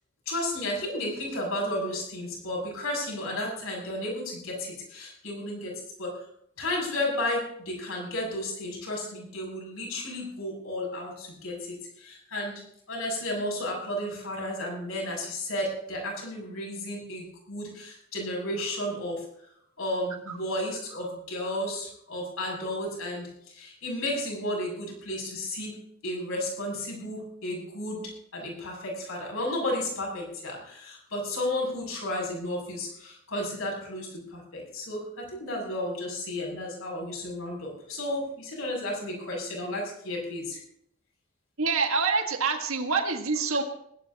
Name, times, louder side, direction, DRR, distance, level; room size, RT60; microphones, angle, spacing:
voice 1, 0.3-5.7 6.0-6.3 6.6-12.6 12.9-19.3 19.8-40.6, left 1 dB, 70° left, -1 dB, 7.2 m, -33 dB
voice 2, 41.6-43.6, right 4 dB, 70° right, 3 dB, 1.7 m, -26 dB
20.5 x 17.5 x 2.9 m, 0.71 s
head